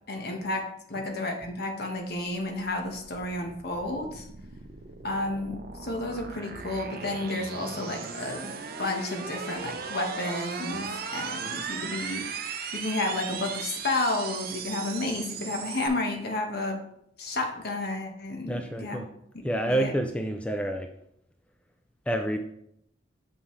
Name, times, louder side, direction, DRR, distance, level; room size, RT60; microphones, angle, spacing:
voice 1, 0.1-4.2 5.0-8.5 8.8-12.3 12.7-16.8 17.2-19.0 19.7-19.9, left 2 dB, 60° left, 3 dB, 1.2 m, -31 dB
sound 1, 2.5-15.9, right 6 dB, 55° right, 0.7 m, -38 dB
voice 2, 18.5-19.1 19.4-20.9 22.1-22.4, right 1 dB, 5° left, 5 dB, 0.4 m, -28 dB
6.8 x 5.6 x 3.2 m, 0.74 s
head